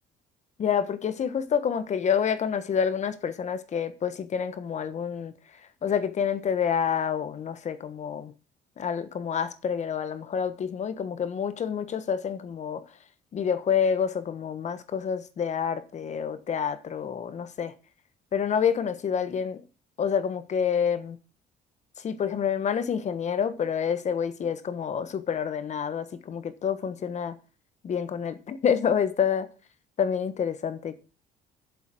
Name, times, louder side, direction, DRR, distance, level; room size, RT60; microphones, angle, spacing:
voice 1, 0.6-5.3 5.8-8.3 8.8-12.8 13.3-17.7 18.3-19.6 20.0-21.2 22.0-27.4 27.8-29.5 30.0-31.0, left 7 dB, 45° left, 1.2 m, -28 dB
8.0 x 7.3 x 7.6 m
cardioid pair, 110°, 17 cm